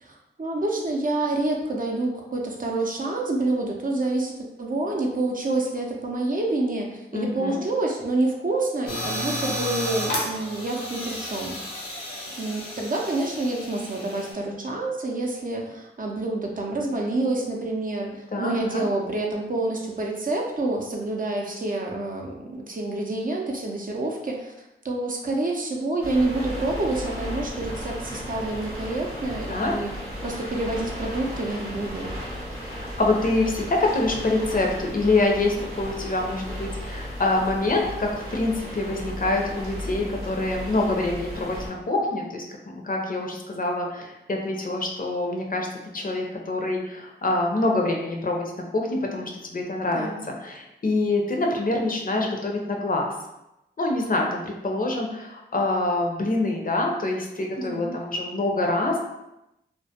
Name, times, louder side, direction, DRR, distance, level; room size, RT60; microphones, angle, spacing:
voice 1, 0.0-11.9 12.4-29.9 30.2-32.1 49.9-50.2 57.6-58.0, right 2 dB, 40° right, 0 dB, 0.5 m, -28 dB
voice 2, 7.1-7.6 18.3-18.8 29.5-29.7 32.6-45.7 45.9-53.1 53.8-59.0, left 2 dB, 40° left, 0 dB, 0.5 m, -26 dB
sound 1, 8.9-14.3, equal, 80° left, 0.7 m, -32 dB
sound 2, 26.0-41.7, equal, 90° right, 0.7 m, -35 dB
2.2 x 2.1 x 2.7 m, 0.90 s
cardioid pair, 45°, 21 cm